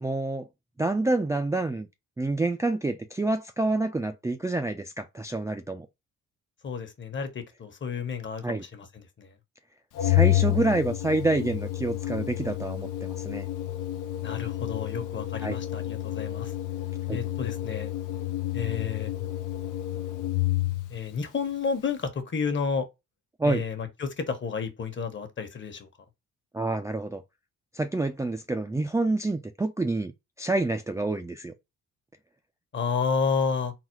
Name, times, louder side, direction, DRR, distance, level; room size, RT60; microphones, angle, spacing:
voice 1, 0.0-0.5 0.8-1.9 2.2-5.9 8.4-8.6 10.0-13.4 15.4-15.6 17.1-17.2 23.4-23.6 26.5-27.2 27.7-30.1 30.4-31.5, right 2 dB, 10° right, 0.4 m, -27 dB
voice 2, 6.6-8.9 9.2-9.3 14.2-16.5 17.1-17.9 18.5-19.1 20.9-22.9 23.4-25.9 32.7-33.7, left 5 dB, 40° left, 1.1 m, -31 dB
Organ, 10.0-21.0, left 16 dB, 80° left, 0.7 m, -29 dB
4.0 x 2.1 x 4.5 m
cardioid pair, 90°, 30 cm